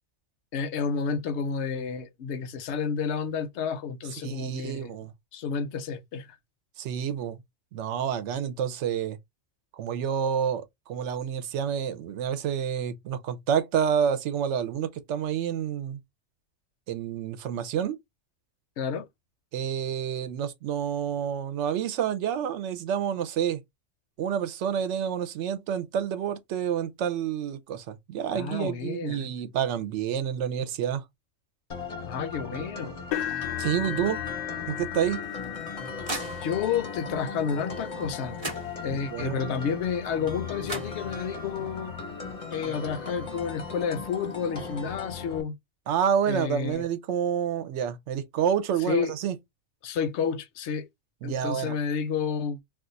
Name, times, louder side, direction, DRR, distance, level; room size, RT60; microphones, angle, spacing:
voice 1, 0.5-4.9 5.3-6.4 18.8-19.1 28.3-29.3 32.1-33.0 36.4-38.4 38.8-42.0 42.5-45.6 46.3-46.8 48.9-49.1 49.8-50.9 51.2-52.6, left 6 dB, 70° left, 0.8 m, -30 dB
voice 2, 4.2-5.1 6.8-7.4 7.7-9.2 9.7-16.0 16.9-18.0 19.5-23.6 24.2-31.0 33.6-34.2 34.7-35.2 38.9-39.5 45.9-49.3 51.2-51.8, right 8 dB, 70° right, 0.9 m, -29 dB
sound 1, 31.7-45.4, left 4 dB, 35° left, 0.6 m, -38 dB
sound 2, 33.1-41.1 41.8-42.0 42.5-42.6 43.9-44.0, left 12 dB, 90° left, 1.0 m, -38 dB
sound 3, 35.2-36.9 38.0-38.1 38.4-39.2 40.3-40.4 40.6-41.5, right 2 dB, 25° right, 0.9 m, -38 dB
2.4 x 2.4 x 3.7 m
omnidirectional pair, 1.3 m